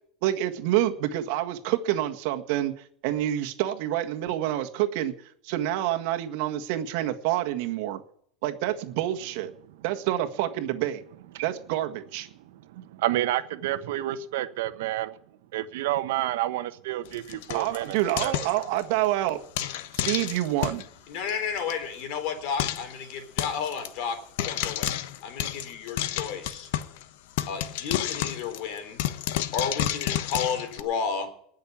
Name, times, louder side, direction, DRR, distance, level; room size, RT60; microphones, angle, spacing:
voice 1, 0.2-2.7 3.0-5.1 5.4-8.0 8.4-9.5 9.8-11.0 11.4-12.3 17.5-19.7 19.9-20.8, right 13 dB, 65° right, 1.7 m, -27 dB
voice 2, 12.3-15.2 15.5-18.3, right 14 dB, 80° right, 1.2 m, -30 dB
Frying (food), 17.1-19.1 19.6-20.9 21.3-21.4 21.6-21.7 22.0-22.1 22.6-22.9 23.4-23.9 24.4-27.0 27.4-30.8, left 12 dB, 70° left, 1.1 m, -30 dB
voice 3, 21.1-24.9 25.2-26.7 27.5-29.1 29.5-31.3, left 6 dB, 55° left, 3.4 m, -32 dB
19.5 x 6.6 x 8.6 m
supercardioid pair, 150°, 0 cm